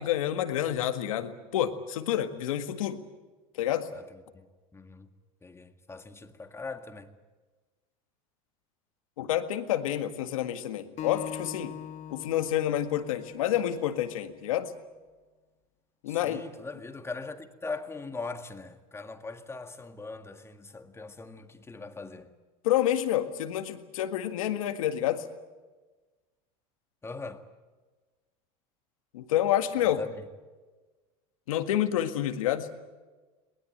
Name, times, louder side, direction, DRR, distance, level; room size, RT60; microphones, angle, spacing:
voice 1, 0.0-3.0 3.6-3.9 9.2-11.7 12.1-14.7 16.0-16.4 22.6-25.2 29.1-30.0 31.5-32.7, left 11 dB, 85° left, 1.8 m, -28 dB
voice 2, 4.3-5.1 5.4-7.1 16.1-22.3 27.0-27.4 29.8-30.2, left 3 dB, 15° left, 1.9 m, -40 dB
Acoustic guitar, 11.0-14.3, left 10 dB, 45° left, 2.0 m, -42 dB
22.5 x 20.0 x 9.0 m
supercardioid pair, 100°, 17 cm